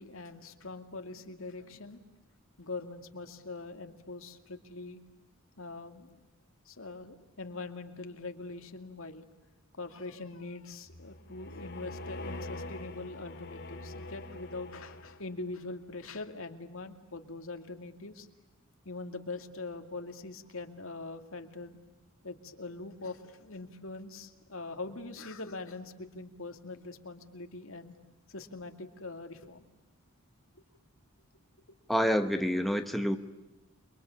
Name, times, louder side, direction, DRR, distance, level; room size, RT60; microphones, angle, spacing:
voice 1, 0.0-2.0 2.6-5.0 5.6-6.2 6.7-9.2 9.8-18.3 18.8-21.8 22.2-27.9 28.3-29.6, left 3 dB, 65° left, 6 dB, 2.4 m, -43 dB
sound 1, 10.9-15.5, left 2 dB, 50° left, 2.2 m, -44 dB
voice 2, 31.9-33.2, equal, ahead, 6 dB, 1.1 m, -27 dB
29.0 x 23.5 x 8.5 m, 1.0 s
head